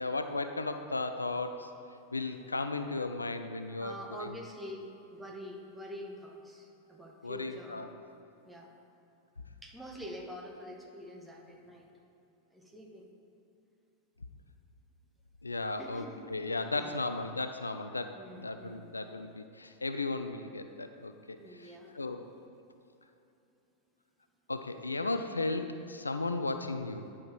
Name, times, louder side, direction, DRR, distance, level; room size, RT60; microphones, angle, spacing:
voice 1, 0.0-1.7 2.1-3.9 4.2-4.4 7.2-7.9 15.4-22.3 24.5-27.1, left 3 dB, 80° left, 8 dB, 0.3 m, -35 dB
voice 2, 3.8-4.8 5.1-7.9 8.4-8.7 9.6-11.9 12.5-13.1 15.8-16.3 16.6-17.0 18.1-19.0 21.4-21.9, equal, 5° right, 0 dB, 1.1 m, -46 dB
9.8 x 4.9 x 4.5 m, 2.8 s
figure-of-eight pair, 90°, 0 cm